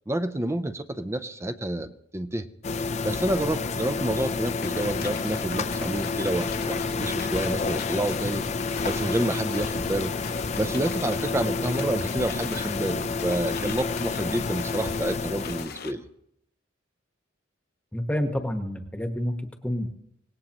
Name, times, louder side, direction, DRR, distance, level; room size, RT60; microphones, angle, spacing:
voice 1, 0.1-2.5 3.0-8.4 8.8-10.1 10.6-16.1, right 1 dB, 15° right, 10 dB, 0.6 m, -29 dB
sound 1, 2.6-15.7, left 4 dB, 35° left, 0.5 m, -29 dB
sound 2, 3.7-11.8, equal, 70° right, 6.3 m, -52 dB
sound 3, 4.6-15.9, left 6 dB, 55° left, 0.9 m, -41 dB
voice 2, 17.9-19.9, equal, 5° left, 5 dB, 1.2 m, -29 dB
25.5 x 18.5 x 3.0 m, 0.77 s
head